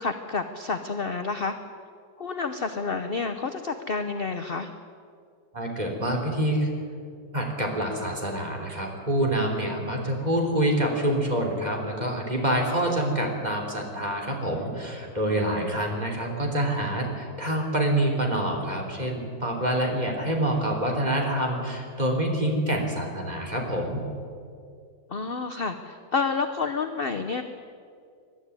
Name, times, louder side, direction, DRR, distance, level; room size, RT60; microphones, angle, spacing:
voice 1, 0.0-1.5 2.2-4.7 9.8-9.9 15.3-15.7 25.1-27.4, left 4 dB, 45° left, 7 dB, 0.7 m, -29 dB
voice 2, 5.5-6.7 7.3-24.0, right 1 dB, 20° right, 1 dB, 3.4 m, -26 dB
22.0 x 12.5 x 9.7 m, 2.3 s
omnidirectional pair, 2.1 m